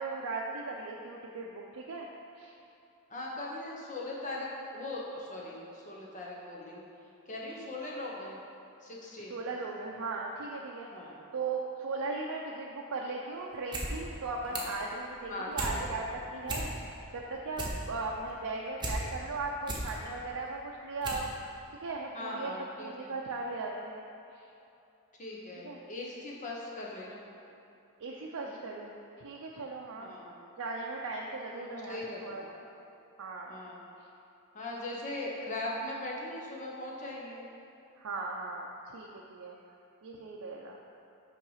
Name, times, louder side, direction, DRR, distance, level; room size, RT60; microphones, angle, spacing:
voice 1, 0.0-2.1 2.3-2.5 9.3-10.9 11.3-16.7 17.1-21.3 21.8-22.5 22.8-24.1 25.6-25.8 28.0-30.1 30.6-32.6 33.2-33.6 38.0-39.5 40.0-40.8, right 3 dB, 75° right, -2 dB, 0.5 m, -38 dB
voice 2, 3.1-6.8 7.3-8.4 8.8-9.4 10.9-11.2 14.5-14.7 15.3-15.9 22.1-23.1 25.2-27.2 28.4-28.6 30.0-30.3 31.5-32.4 33.5-33.8 34.5-37.4, left 1 dB, 35° left, -3 dB, 1.0 m, -40 dB
sound 1, 13.5-13.9 14.2-14.8 15.2-15.8 16.1-16.2 16.4-17.0 17.3-19.0 19.4-19.9 20.5-20.6 21.0-21.3 21.6-21.7, right 2 dB, 20° right, 0.8 m, -36 dB
5.8 x 4.8 x 5.6 m, 2.8 s
head